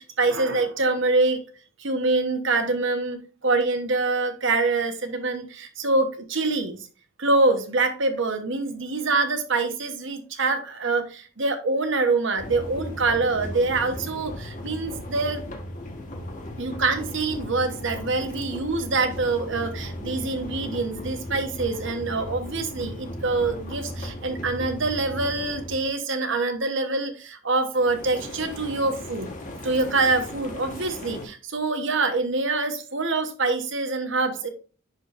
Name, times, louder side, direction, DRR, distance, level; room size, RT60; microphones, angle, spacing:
voice 1, 0.0-1.4 1.8-6.8 7.2-15.4 16.6-29.3 29.6-34.5, right 3 dB, 60° right, 7 dB, 1.1 m, -25 dB
sound 1, 12.4-25.9 27.8-31.3, left 1 dB, 35° left, 1.3 m, -36 dB
10.5 x 4.6 x 2.6 m, 0.38 s
head